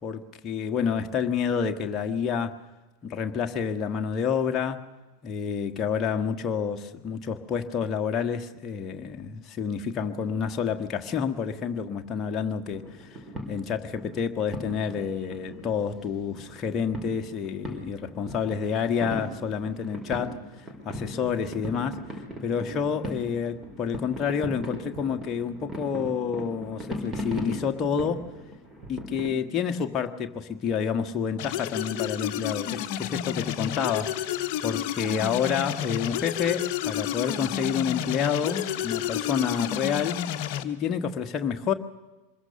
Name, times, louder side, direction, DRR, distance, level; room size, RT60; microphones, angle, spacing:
voice 1, 0.0-2.6 3.0-4.9 5.2-13.1 13.5-20.5 20.8-22.0 22.4-28.3 28.9-34.2 34.6-40.2 40.6-41.7, left 7 dB, 25° left, 1.5 m, -29 dB
sound 1, 12.7-29.3, equal, 15° right, 4.9 m, -38 dB
sound 2, 31.4-40.6, left 11 dB, 45° left, 1.2 m, -31 dB
24.5 x 21.5 x 6.7 m
figure-of-eight pair, 90°, 0 cm